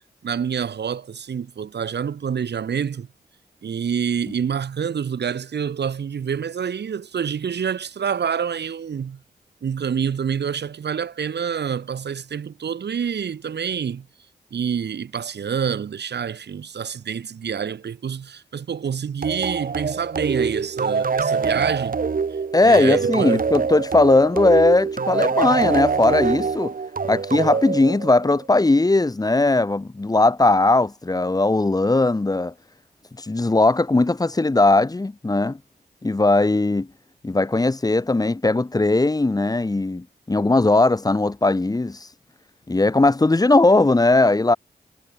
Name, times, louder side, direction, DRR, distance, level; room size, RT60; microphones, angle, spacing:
voice 1, 0.2-3.1 3.6-9.2 9.6-14.1 14.5-22.0 22.6-23.4, right 7 dB, 75° right, 4.2 m, -27 dB
sound 1, 19.2-28.5, right 5 dB, 55° right, 2.4 m, -24 dB
voice 2, 22.5-26.7 27.1-32.5 33.2-35.6 36.0-36.9 37.2-42.0 42.7-44.6, left 2 dB, 20° left, 1.0 m, -18 dB
cardioid pair, 55°, 17 cm